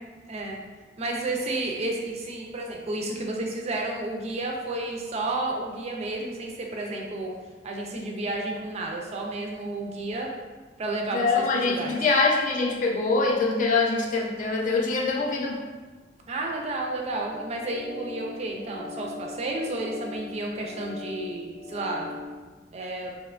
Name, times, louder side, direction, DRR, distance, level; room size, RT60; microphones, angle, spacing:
voice 1, 0.3-0.6 1.0-7.3 7.6-10.3 10.8-12.0 16.3-22.1 22.7-23.1, right 2 dB, 35° right, 0 dB, 0.4 m, -31 dB
voice 2, 11.1-15.6, left 3 dB, 45° left, -1 dB, 0.4 m, -24 dB
sound 1, 17.2-22.3, left 4 dB, 10° left, 0.7 m, -40 dB
2.8 x 2.2 x 2.3 m, 1.3 s
head